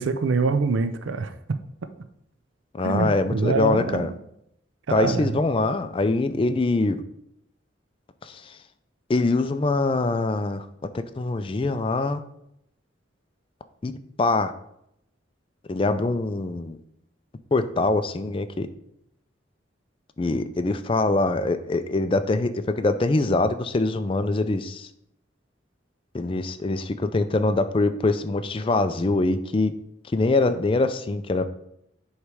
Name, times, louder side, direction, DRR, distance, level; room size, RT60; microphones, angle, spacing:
voice 1, 0.0-1.6 2.8-4.1 4.9-5.3, right 4 dB, 75° right, 10 dB, 0.5 m, -25 dB
voice 2, 2.7-4.1 4.9-7.0 8.2-8.6 9.1-10.7 11.2-12.2 13.8-14.5 15.7-16.8 17.5-18.7 20.2-24.9 26.1-29.7 30.1-31.5, left 2 dB, 25° left, 10 dB, 0.3 m, -23 dB
8.0 x 3.2 x 4.8 m, 0.79 s
head